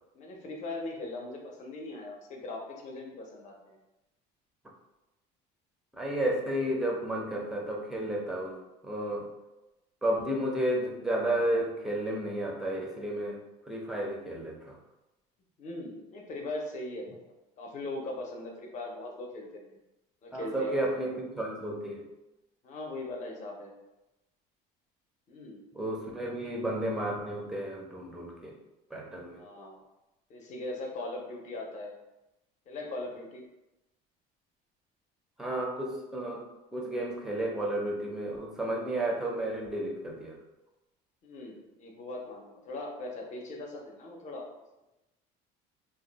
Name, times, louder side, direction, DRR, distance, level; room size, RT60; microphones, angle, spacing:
voice 1, 0.1-3.8 15.6-17.2 17.6-19.8 20.2-20.8 22.6-23.7 25.3-25.6 26.3-26.4 29.4-29.8 30.3-31.9 32.7-33.4 41.2-44.5, left 2 dB, 40° left, 0 dB, 0.7 m, -40 dB
voice 2, 6.0-8.6 8.8-9.3 10.0-13.4 13.7-14.8 20.3-22.0 25.8-28.5 28.9-29.4 35.4-36.5 36.7-40.3, right 1 dB, ahead, -1 dB, 0.5 m, -32 dB
2.6 x 2.2 x 3.9 m, 0.99 s
cardioid pair, 135°, 19 cm